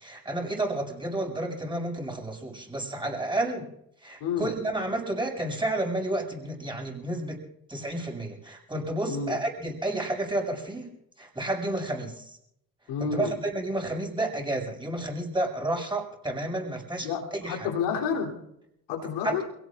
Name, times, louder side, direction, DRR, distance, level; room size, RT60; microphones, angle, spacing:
voice 1, 0.0-3.7 4.0-7.4 7.7-10.9 11.2-12.3 13.0-17.7 19.2-19.4, right 1 dB, 10° right, 1 dB, 7.0 m, -31 dB
voice 2, 9.0-9.4 12.9-13.3 17.0-18.4 18.9-19.4, left 6 dB, 65° left, -1 dB, 3.4 m, -30 dB
29.0 x 18.0 x 2.5 m, 0.77 s
figure-of-eight pair, 45°, 45 cm